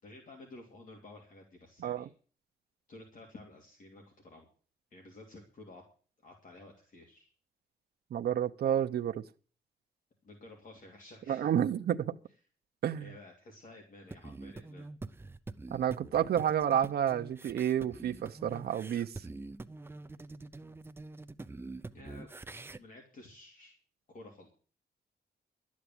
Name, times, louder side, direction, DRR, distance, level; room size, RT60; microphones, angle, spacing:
voice 1, 0.0-2.1 2.9-4.5 4.9-5.8 6.2-7.3 10.2-11.5 13.0-14.9 21.9-22.3 22.8-23.8 24.1-24.5, left 2 dB, 50° left, 2.9 m, -52 dB
voice 2, 8.1-9.2 11.3-12.1 12.8-13.1 15.7-19.3, right 10 dB, 65° right, 0.7 m, -30 dB
sound 1, 14.1-22.8, right 3 dB, 15° right, 0.5 m, -46 dB
12.5 x 8.6 x 7.8 m
wide cardioid pair, 170°, 17 cm